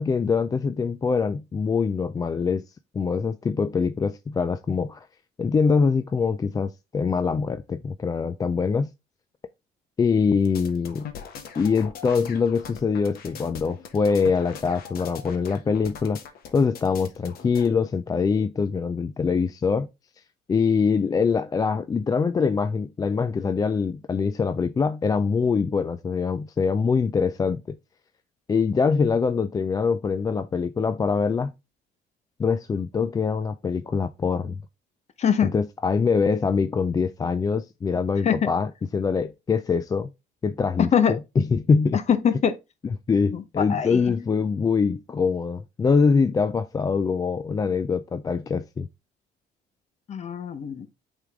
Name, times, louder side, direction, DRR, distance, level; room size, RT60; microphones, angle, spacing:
voice 1, 0.0-2.6 2.9-5.0 5.4-8.9 10.0-11.1 11.6-16.2 16.5-19.9 20.5-27.8 28.5-31.5 32.4-34.6 35.4-40.1 40.4-42.0 43.1-48.9, left 5 dB, 20° left, 0.3 m, -24 dB
sound 1, 10.4-17.7, left 7 dB, 65° left, 1.2 m, -41 dB
voice 2, 35.2-35.5 38.2-38.5 40.9-41.2 41.9-42.6 43.3-44.1 50.1-50.9, left 8 dB, 40° left, 0.9 m, -23 dB
8.1 x 3.6 x 3.5 m
cardioid pair, 110°, 17 cm